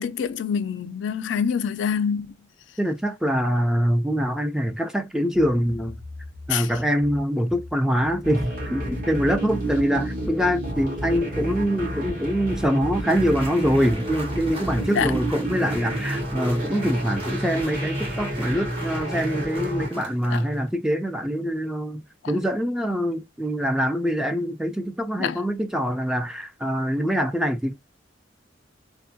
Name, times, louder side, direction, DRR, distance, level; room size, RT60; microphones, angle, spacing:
voice 1, 0.0-2.3 6.5-6.7 14.9-15.1 20.3-20.4 22.2-22.3 25.2-25.4, left 7 dB, 70° left, 0.3 m, -25 dB
voice 2, 2.8-6.0 6.5-27.7, equal, 5° right, 0.3 m, -24 dB
sound 1, 5.3-12.6 13.3-15.8, left 1 dB, 70° right, 0.9 m, -44 dB
sound 2, 8.2-19.9, right 1 dB, 50° right, 1.9 m, -30 dB
sound 3, 13.1-20.7, right 2 dB, 30° right, 1.1 m, -41 dB
3.4 x 2.2 x 2.5 m
head